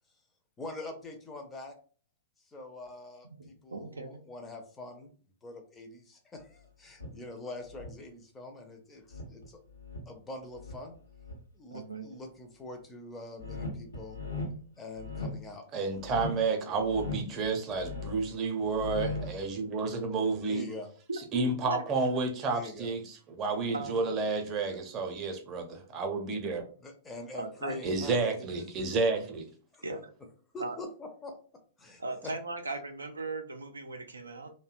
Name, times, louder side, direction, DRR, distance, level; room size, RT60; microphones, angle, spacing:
voice 1, 0.6-1.7 2.5-5.1 5.4-9.6 10.1-10.9 11.5-14.2 14.8-15.6 20.4-20.9 22.5-22.9 26.8-29.3 29.7-29.9 30.5-31.3 31.8-32.3, left 2 dB, 15° left, 0.5 m, -44 dB
voice 2, 3.4-4.2 11.7-12.2 21.1-21.8 22.4-22.5 23.7-24.1 27.3-27.8 29.8-30.1 30.6-30.8 32.0-34.5, right 3 dB, 80° right, 0.4 m, -38 dB
sound 1, 7.0-7.1 7.7-7.9 9.1-10.1 10.6-11.4 13.4-14.6 15.0-15.4 16.0-16.4 16.8-18.3 18.6-19.5, left 3 dB, 80° left, 0.7 m, -38 dB
voice 3, 15.7-20.7 21.3-26.7 27.8-29.5, right 4 dB, 30° right, 0.6 m, -31 dB
2.6 x 2.1 x 2.4 m
figure-of-eight pair, 105°, 0 cm